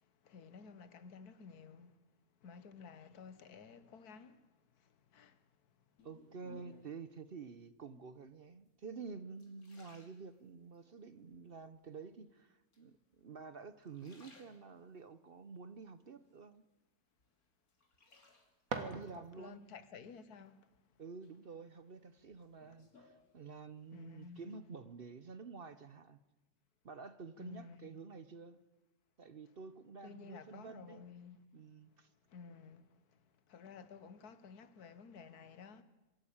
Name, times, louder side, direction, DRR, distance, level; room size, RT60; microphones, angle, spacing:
voice 1, 0.0-2.0 2.4-4.5 4.8-5.4 18.8-20.7 23.9-24.7 27.4-27.9 30.0-31.4 32.3-35.8, left 5 dB, 90° left, 1.7 m, -54 dB
sound 1, 6.0-7.1 7.8-8.3 8.9-10.8 11.3-11.9 12.7-13.4 13.7-15.1 15.5-16.8 17.2-18.8 20.2-20.8 21.2-23.8 24.1-24.6, left 3 dB, 70° left, 3.2 m, -64 dB
voice 2, 6.0-16.7 18.7-19.6 21.0-26.2 26.8-28.6 29.2-31.0 31.5-32.1, right 5 dB, 45° right, 0.8 m, -50 dB
sound 2, 18.2-19.7, right 4 dB, 65° right, 2.2 m, -44 dB
24.0 x 13.0 x 8.7 m
omnidirectional pair, 1.6 m